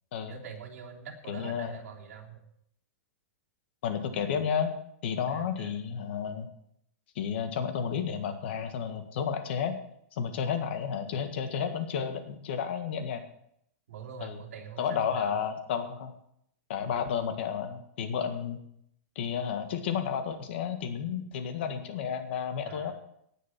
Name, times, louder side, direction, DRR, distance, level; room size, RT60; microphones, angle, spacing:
voice 1, 0.3-2.4 5.3-5.7 10.7-10.8 13.9-15.4 22.6-22.9, right 7 dB, 70° right, -2 dB, 3.4 m, -44 dB
voice 2, 1.3-1.8 3.8-4.7 5.0-6.5 7.1-9.8 10.1-13.2 14.2-14.4 14.8-16.1 16.7-18.6 19.1-22.9, left 7 dB, 45° left, 7 dB, 1.6 m, -32 dB
18.0 x 6.4 x 6.0 m, 0.72 s
supercardioid pair, 180°, 8 cm